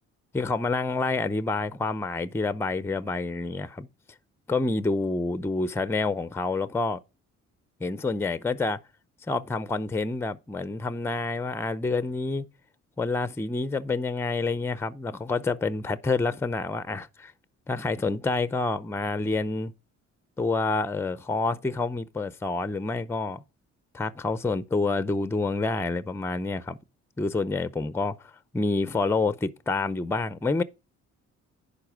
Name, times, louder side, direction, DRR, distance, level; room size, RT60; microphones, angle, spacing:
voice 1, 0.3-3.9 4.5-7.0 7.8-8.8 9.3-12.4 13.0-17.3 17.7-19.7 20.4-23.4 23.9-26.8 27.2-30.6, left 3 dB, 10° left, 0.5 m, -28 dB
10.5 x 4.2 x 6.0 m
cardioid pair, 90°, 30 cm